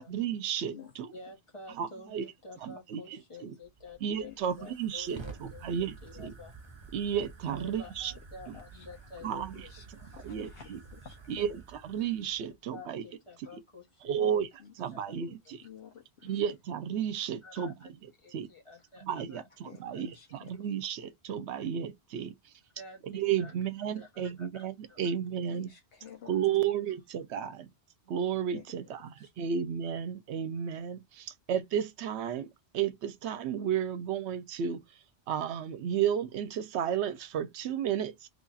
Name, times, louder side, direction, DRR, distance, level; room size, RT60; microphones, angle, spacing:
voice 1, 0.0-1.1 1.8-2.2 2.6-3.5 4.0-6.3 6.9-8.1 9.2-9.5 10.2-10.8 11.3-13.0 13.5-13.6 14.0-14.5 14.8-15.6 16.2-17.7 18.3-18.5 19.0-22.3 23.1-25.7 26.3-27.7 28.1-34.8 35.3-38.3, right 8 dB, 85° right, 0.9 m, -33 dB
voice 2, 0.6-0.9 4.2-4.4 8.7-8.9 9.5-11.4 14.1-14.3 14.6-16.4 19.6-20.5 25.5-26.6 28.5-28.8 29.2-29.3, left 8 dB, 65° left, 0.9 m, -51 dB
voice 3, 1.1-6.8 7.5-9.7 10.3-10.4 12.7-14.4 14.9-15.2 15.4-15.5 16.2-16.4 17.4-17.9 18.2-19.4 19.9-20.0 22.7-23.5 23.9-25.0 25.3-25.4 26.2-26.3, left 3 dB, 30° left, 1.1 m, -50 dB
Fire, 3.6-12.6, right 4 dB, 30° right, 0.6 m, -50 dB
3.2 x 2.4 x 3.9 m
omnidirectional pair, 1.1 m